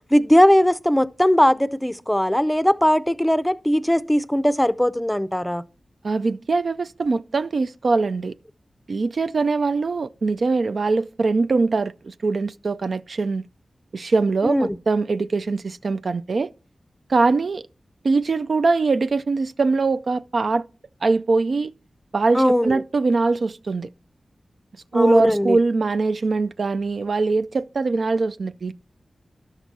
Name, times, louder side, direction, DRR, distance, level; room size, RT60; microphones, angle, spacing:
voice 1, 0.1-5.6 14.4-14.8 22.3-22.7 24.9-25.6, equal, 5° left, 0.5 m, -19 dB
voice 2, 6.0-8.3 8.9-13.4 13.9-16.5 17.1-17.6 18.0-20.6 21.0-21.7 22.1-23.9 24.9-28.7, right 3 dB, 65° right, 0.3 m, -22 dB
12.5 x 5.9 x 4.2 m
wide cardioid pair, 65°, 0 cm